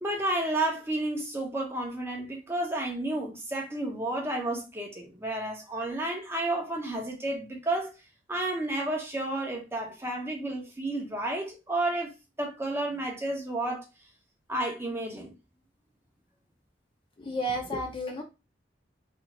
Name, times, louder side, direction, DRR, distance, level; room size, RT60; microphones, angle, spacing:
voice 1, 0.0-7.9 8.3-12.1 12.4-13.8 14.5-15.3, right 1 dB, 15° right, 0.6 m, -31 dB
voice 2, 17.2-18.2, equal, 30° left, 0.5 m, -32 dB
2.6 x 2.3 x 2.9 m
head